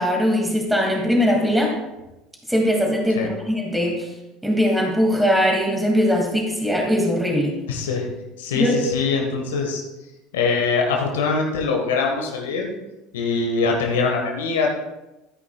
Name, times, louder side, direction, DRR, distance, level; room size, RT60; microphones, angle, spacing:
voice 1, 0.0-1.8 2.5-4.1 4.4-7.6 8.5-8.8, equal, 5° right, 0 dB, 2.3 m, -20 dB
voice 2, 7.7-8.1 8.4-9.8 10.3-12.7 13.1-14.7, left 4 dB, 75° left, 1 dB, 1.4 m, -23 dB
13.0 x 9.8 x 2.3 m, 0.99 s
figure-of-eight pair, 70°, 0 cm